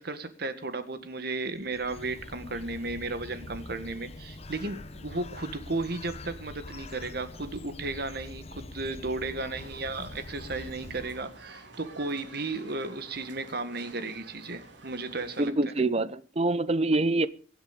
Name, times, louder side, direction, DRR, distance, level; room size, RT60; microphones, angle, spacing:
voice 1, 0.0-15.5, right 3 dB, 60° right, 1.7 m, -34 dB
Bird, 1.5-11.5, left 2 dB, 35° left, 0.8 m, -44 dB
sound 1, 9.5-15.5, right 3 dB, 80° right, 3.1 m, -50 dB
voice 2, 15.4-17.3, right 2 dB, 35° right, 0.7 m, -25 dB
23.0 x 8.0 x 5.2 m
head